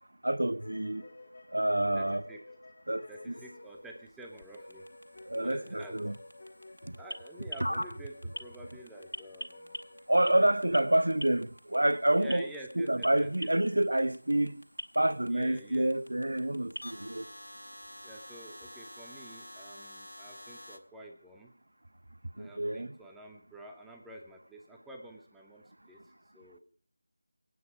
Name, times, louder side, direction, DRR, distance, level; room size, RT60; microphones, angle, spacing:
voice 1, 0.2-1.1 1.5-2.2 2.9-3.3 5.3-6.2 10.1-12.5 12.8-14.6 15.0-17.3 22.4-22.9, right 1 dB, 65° right, 0.6 m, -28 dB
sound 1, 0.6-10.6, left 2 dB, 35° left, 1.4 m, -52 dB
voice 2, 1.9-2.4 3.1-4.9 5.3-6.0 7.0-9.7 10.2-10.8 12.2-13.5 15.3-15.9 18.0-21.5 22.4-26.6, right 1 dB, 5° right, 1.0 m, -49 dB
sound 2, 3.4-20.8, equal, 90° left, 1.8 m, -45 dB
25.5 x 9.0 x 5.0 m
figure-of-eight pair, 165°, 0 cm